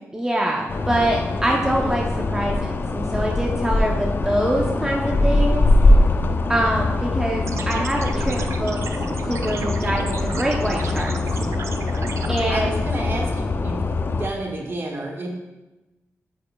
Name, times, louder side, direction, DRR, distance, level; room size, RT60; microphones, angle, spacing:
voice 1, 0.1-5.7 6.5-8.8 9.3-11.1 12.3-12.8, right 1 dB, 10° right, -1 dB, 0.6 m, -24 dB
sound 1, 0.7-14.3, left 2 dB, 45° left, 0.4 m, -22 dB
sound 2, 7.4-12.5, right 4 dB, 65° right, 0.4 m, -33 dB
voice 2, 12.5-15.3, right 2 dB, 50° right, -1 dB, 1.4 m, -31 dB
8.3 x 5.3 x 2.2 m, 1.1 s
cardioid pair, 85°, 5 cm